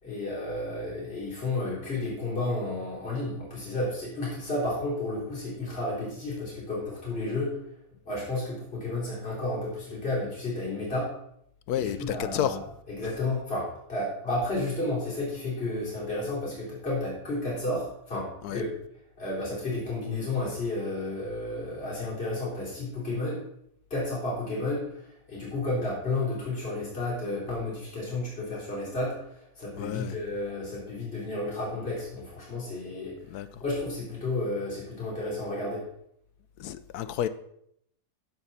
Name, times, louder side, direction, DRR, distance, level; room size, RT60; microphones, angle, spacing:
voice 1, 0.0-7.6 8.0-11.1 11.8-12.6 12.9-18.7 19.2-23.4 23.9-35.8, left 2 dB, 35° left, 4.1 m, -32 dB
voice 2, 11.7-12.6 18.4-18.6 29.8-30.1 33.3-33.6 36.6-37.3, left 10 dB, 75° left, 1.1 m, -30 dB
15.5 x 6.0 x 4.2 m
omnidirectional pair, 1.8 m